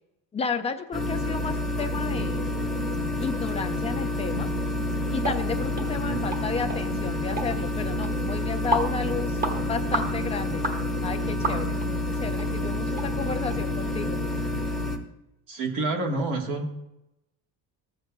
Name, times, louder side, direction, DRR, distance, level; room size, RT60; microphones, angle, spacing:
voice 1, 0.3-2.4 3.2-4.5 5.1-10.6 11.0-11.7 12.2-14.2, left 5 dB, 20° left, 7 dB, 0.4 m, -32 dB
sound 1, 0.9-15.0, left 1 dB, ahead, 0.9 m, -28 dB
sound 2, 5.2-5.4 5.8-5.9 6.3-6.4 6.7-6.8 7.4-7.5 8.0-8.1 8.7-8.9 9.4-9.6 9.9-10.1 10.6-10.8 11.4-11.9 12.4-12.5 13.0-13.1 13.5-13.6, right 2 dB, 25° right, 1.2 m, -28 dB
voice 2, 15.5-16.7, right 2 dB, 60° right, 0 dB, 1.4 m, -28 dB
15.0 x 7.9 x 2.2 m, 0.90 s
cardioid pair, 165°, 35 cm